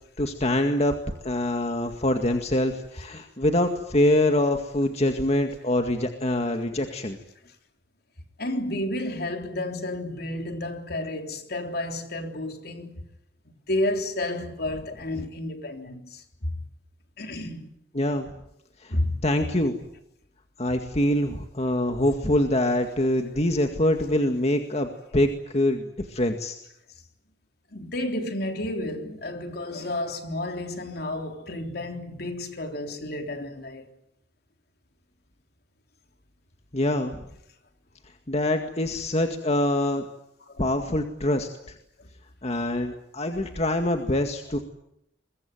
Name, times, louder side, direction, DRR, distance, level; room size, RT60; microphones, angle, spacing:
voice 1, 0.2-0.9 1.2-7.2 17.9-18.3 18.8-18.9 19.2-19.7 20.6-26.6 36.7-37.2 38.3-40.0 40.6-41.8 42.4-44.6, left 1 dB, 40° left, 2.0 m, -24 dB
voice 2, 8.4-13.0 13.5-16.5 17.2-17.7 18.9-19.2 27.7-33.9 40.5-40.6, left 1 dB, 60° left, 3.6 m, -31 dB
24.5 x 22.5 x 9.3 m
head